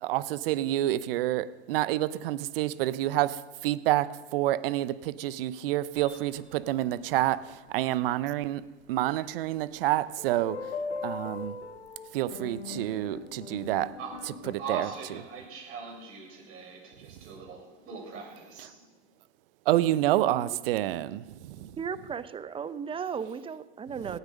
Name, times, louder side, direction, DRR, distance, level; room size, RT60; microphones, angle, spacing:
voice 1, 0.0-10.6 11.0-11.6 12.1-13.9 14.5-14.9 19.7-21.8, right 14 dB, 60° right, 16 dB, 0.8 m, -28 dB
sound 1, 6.0-6.6 8.7-8.8 10.2-14.5, left 4 dB, 90° left, 1.1 m, -39 dB
voice 2, 14.6-18.9, right 5 dB, 45° right, 0 dB, 7.0 m, -41 dB
voice 3, 21.8-24.2, right 6 dB, 15° right, 14 dB, 0.8 m, -35 dB
18.0 x 12.5 x 5.3 m, 1.1 s
hypercardioid pair, 100°, 32 cm